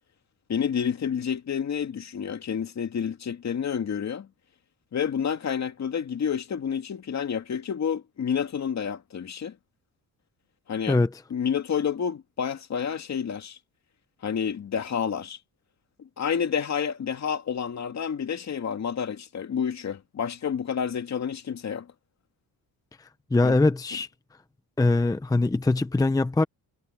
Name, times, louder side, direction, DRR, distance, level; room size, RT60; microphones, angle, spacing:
voice 1, 0.5-4.3 4.9-9.6 10.7-11.0 11.3-13.6 14.2-15.4 16.0-21.9 23.4-23.6, left 7 dB, 45° left, 2.5 m, -29 dB
voice 2, 23.3-24.1 24.8-26.4, left 2 dB, 10° left, 0.7 m, -22 dB
cardioid pair, 115°, 37 cm